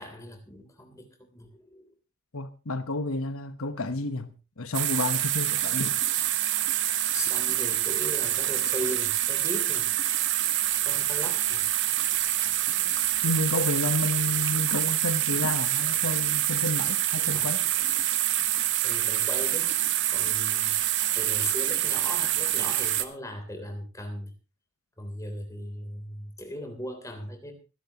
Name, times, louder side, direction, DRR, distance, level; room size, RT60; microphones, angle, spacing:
voice 1, 0.0-1.9 7.1-9.9 10.8-11.6 17.2-17.5 18.8-19.7 20.1-20.8 21.1-24.3 25.0-27.5, left 1 dB, 15° left, 3.3 m, -38 dB
voice 2, 2.3-6.0 13.2-17.6, left 2 dB, 75° left, 1.1 m, -30 dB
sound 1, 4.7-23.0, right 13 dB, 55° right, 1.1 m, -26 dB
25.5 x 11.0 x 3.0 m
head